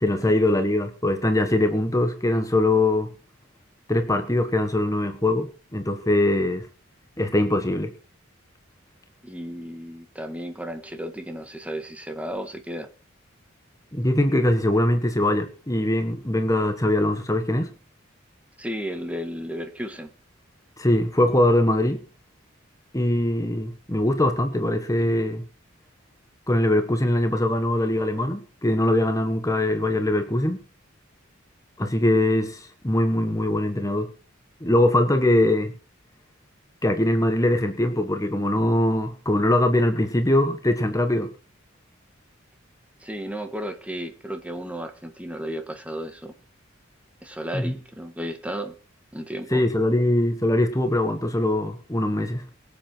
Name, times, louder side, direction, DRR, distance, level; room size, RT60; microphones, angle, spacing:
voice 1, 0.0-3.1 3.9-6.7 7.2-7.9 13.9-17.7 20.8-22.0 22.9-25.4 26.5-30.6 31.8-34.1 34.6-35.7 36.8-41.3 47.5-47.7 49.5-52.5, left 1 dB, 15° left, 7 dB, 1.4 m, -22 dB
voice 2, 9.2-12.9 18.6-20.1 43.0-46.3 47.2-48.7 49.1-49.6, equal, 5° right, 7 dB, 1.7 m, -33 dB
23.0 x 7.8 x 4.5 m, 0.35 s
head